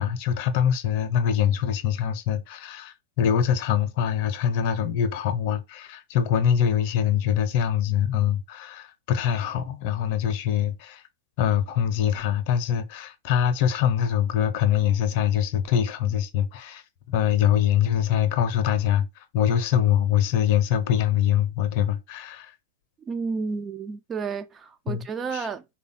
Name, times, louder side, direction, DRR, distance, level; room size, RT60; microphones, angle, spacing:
voice 1, 0.0-11.0 11.4-16.8 17.1-19.1 19.3-22.5 24.9-25.0 25.3-25.5, left 9 dB, 50° left, 0.6 m, -24 dB
voice 2, 23.0-25.7, right 5 dB, 25° right, 0.3 m, -31 dB
3.3 x 2.2 x 3.9 m
figure-of-eight pair, 100°, 0 cm